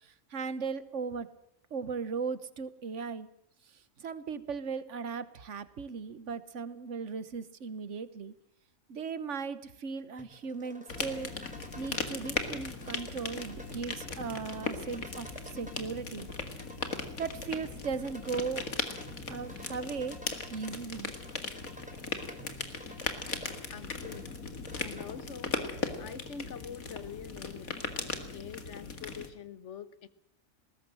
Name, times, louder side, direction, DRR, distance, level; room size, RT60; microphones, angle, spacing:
voice 1, 0.0-1.3 1.7-3.3 3.7-8.3 8.9-11.3 11.8-16.3 17.2-18.7 19.3-20.2 20.5-21.1, right 5 dB, 60° right, 14 dB, 1.4 m, -37 dB
sound 1, 10.2-25.1, right 1 dB, 5° right, 3.2 m, -50 dB
sound 2, 10.9-29.3, left 4 dB, 90° left, 2.4 m, -38 dB
voice 2, 23.7-24.3 24.8-25.6 26.0-27.8 28.3-30.1, left 7 dB, 60° left, 14 dB, 1.4 m, -45 dB
20.5 x 18.0 x 7.6 m, 0.78 s
omnidirectional pair, 1.4 m